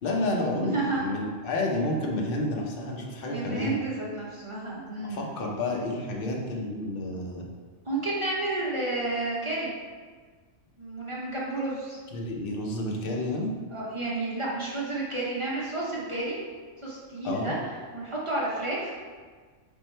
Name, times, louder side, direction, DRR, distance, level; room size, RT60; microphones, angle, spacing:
voice 1, 0.0-3.8 5.0-7.5 12.1-13.5 17.2-17.5, left 2 dB, 55° left, -1 dB, 0.8 m, -30 dB
voice 2, 0.6-1.0 3.3-5.4 7.9-9.7 10.8-12.0 13.7-16.4 16.8-17.6 17.9-18.9, right 2 dB, 30° right, -6 dB, 0.6 m, -31 dB
3.5 x 3.1 x 4.3 m, 1.5 s
omnidirectional pair, 1.3 m